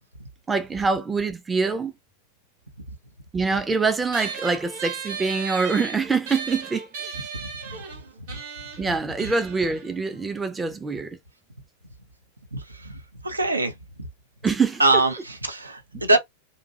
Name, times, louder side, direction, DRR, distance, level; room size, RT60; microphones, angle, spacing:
voice 1, 0.5-1.9 3.3-7.2 8.8-11.2 14.4-14.8, right 4 dB, 15° right, 0.5 m, -25 dB
sound 1, 4.1-10.9, right 6 dB, 55° right, 1.0 m, -36 dB
voice 2, 7.4-7.8 8.3-8.4 12.5-13.7 14.0-14.1 14.8-16.2, right 2 dB, 80° right, 0.6 m, -24 dB
2.5 x 2.3 x 2.5 m
figure-of-eight pair, 90°, 0 cm